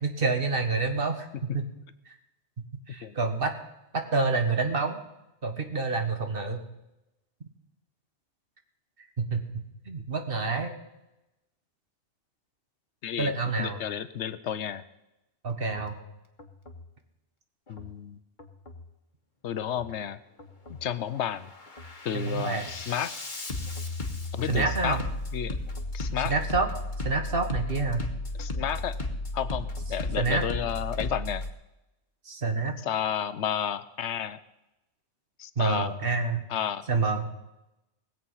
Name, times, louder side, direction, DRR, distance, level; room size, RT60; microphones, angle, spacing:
voice 1, 0.0-1.6 2.9-3.5 3.9-5.0 5.4-6.6 9.2-10.7 13.2-13.8 15.4-16.0 22.1-22.7 24.5-25.0 26.2-26.7 27.0-28.1 30.2-30.4 32.3-32.7 35.6-36.4 36.9-37.4, right 3 dB, 55° right, 5 dB, 1.7 m, -28 dB
voice 2, 13.6-14.8 17.7-18.2 19.4-20.2 20.7-21.5 22.0-23.1 24.3-25.0 25.3-25.6 25.9-26.3 28.4-29.0 29.3-31.4 32.8-34.4 35.4-35.9 36.5-36.8, left 9 dB, 75° left, 14 dB, 1.0 m, -31 dB
Bass drum, 15.7-15.9 16.4-16.9 17.7-17.9 18.4-18.9 19.7-19.9 20.4-20.9 21.3-31.5, left 2 dB, 45° left, 1.4 m, -35 dB
20.0 x 7.9 x 5.6 m, 0.94 s
omnidirectional pair, 1.2 m